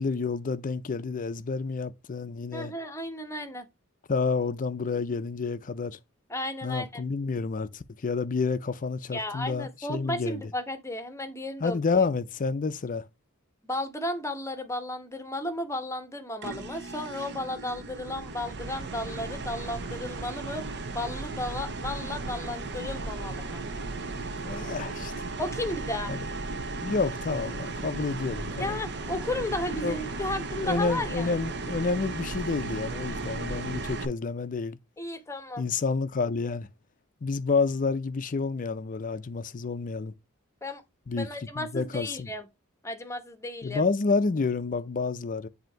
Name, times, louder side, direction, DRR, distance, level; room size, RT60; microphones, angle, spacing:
voice 1, 0.0-2.7 4.1-6.0 6.6-10.5 11.6-13.1 24.4-25.1 26.1-26.2 26.8-28.8 29.8-30.0 30.6-34.8 35.6-36.7 37.2-40.1 41.1-42.3 43.6-45.5, left 4 dB, 40° left, 0.5 m, -29 dB
voice 2, 2.5-3.6 6.3-7.0 9.1-11.8 13.7-20.7 20.9-23.6 25.4-26.1 28.6-31.3 35.0-35.6 40.6-40.8 41.2-42.5 42.8-43.8, left 1 dB, 15° left, 0.9 m, -34 dB
sound 1, 16.4-34.0, right 3 dB, 55° right, 0.7 m, -35 dB
7.7 x 2.8 x 4.5 m
head